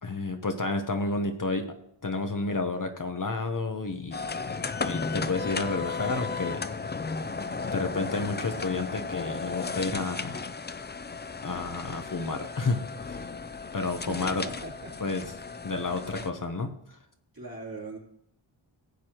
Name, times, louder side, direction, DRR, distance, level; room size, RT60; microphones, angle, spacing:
voice 1, 0.0-1.7 2.0-4.3 4.8-6.6 7.7-10.5 11.4-13.3 13.7-14.5 15.0-15.2 15.6-17.0, left 3 dB, 40° left, 6 dB, 1.0 m, -31 dB
sound 1, 4.1-16.3, left 4 dB, 20° left, 0.4 m, -35 dB
voice 2, 13.8-15.1 17.3-18.0, right 2 dB, 45° right, -3 dB, 3.1 m, -40 dB
15.5 x 8.2 x 3.0 m, 0.75 s
wide cardioid pair, 80°, 50 cm